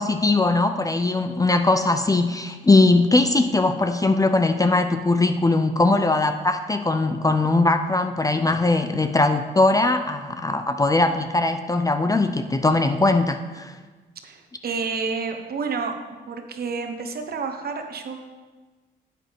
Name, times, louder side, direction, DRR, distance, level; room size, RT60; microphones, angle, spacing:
voice 1, 0.0-13.7, left 2 dB, 15° left, 8 dB, 0.5 m, -20 dB
voice 2, 14.2-15.9 16.3-18.2, right 5 dB, 50° right, 4 dB, 1.1 m, -29 dB
10.0 x 8.4 x 3.6 m, 1.3 s
cardioid pair, 90°, 20 cm